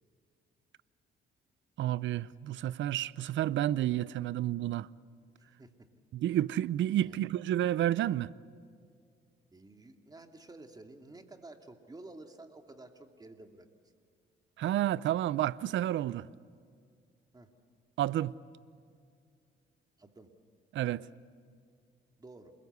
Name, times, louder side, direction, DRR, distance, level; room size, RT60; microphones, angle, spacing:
voice 1, 1.8-4.9 6.1-8.3 14.6-16.3 18.0-18.3 20.7-21.0, right 12 dB, 70° right, 0.6 m, -30 dB
voice 2, 5.4-5.7 7.0-7.2 9.5-13.7 17.3-17.5 20.0-20.3 22.2-22.5, right 2 dB, 20° right, 2.4 m, -51 dB
28.5 x 21.0 x 8.2 m
cardioid pair, 90°, 20 cm